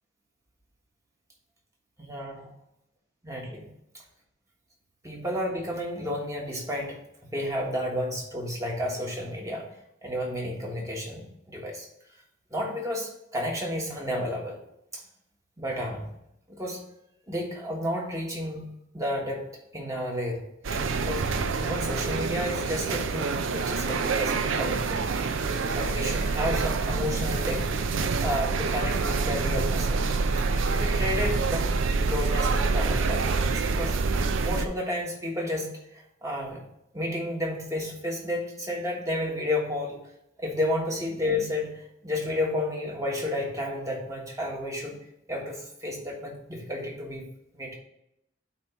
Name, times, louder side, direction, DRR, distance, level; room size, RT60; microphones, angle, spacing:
voice 1, 2.0-2.5 3.2-3.7 5.0-7.0 7.3-9.7 10.0-11.9 12.5-14.6 14.9-15.0 15.6-16.1 16.5-16.8 17.3-19.5 19.7-20.4 20.7-21.3 21.6-25.0 25.7-27.7 28.2-30.1 30.4-31.7 32.1-34.1 34.4-36.6 36.9-40.0 40.4-45.0 45.3-47.3 47.6-47.8, left 1 dB, 15° right, -1 dB, 1.4 m, -31 dB
sound 1, 20.6-34.7, right 4 dB, 80° right, 0.5 m, -26 dB
8.5 x 3.0 x 5.6 m, 0.81 s
head